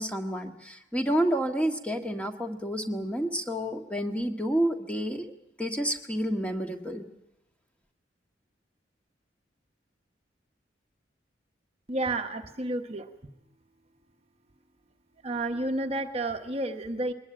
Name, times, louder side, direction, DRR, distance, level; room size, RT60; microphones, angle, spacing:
voice 1, 0.0-5.3 5.6-7.0, equal, 5° left, 3 dB, 1.6 m, -29 dB
voice 2, 11.9-13.1 15.2-17.1, right 2 dB, 35° right, 5 dB, 1.1 m, -31 dB
21.5 x 20.0 x 8.9 m, 0.90 s
head